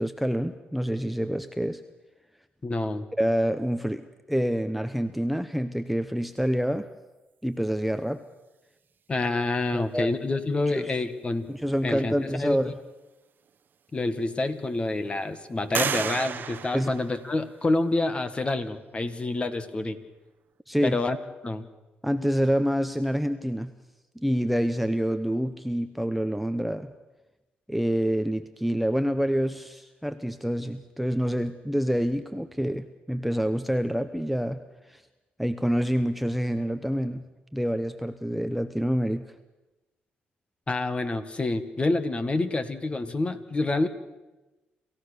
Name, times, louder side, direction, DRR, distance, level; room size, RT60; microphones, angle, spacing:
voice 1, 0.0-1.8 3.2-6.9 7.4-8.2 9.7-10.1 10.7-10.9 11.5-12.7 16.7-16.9 20.7-21.0 22.0-23.7 24.2-26.9 27.7-34.6 34.9-35.0 35.4-37.2 37.5-39.2, equal, ahead, 9 dB, 0.9 m, -27 dB
voice 2, 2.6-3.1 9.1-11.5 11.8-12.7 13.9-20.0 20.8-21.2 21.4-21.7 40.7-43.9, left 2 dB, 30° left, 10 dB, 1.9 m, -27 dB
sound 1, 13.5-13.6 14.2-14.8 15.7-17.7, right 7 dB, 55° right, 1.1 m, -32 dB
27.5 x 15.5 x 6.8 m, 1.1 s
cardioid pair, 80°, 4 cm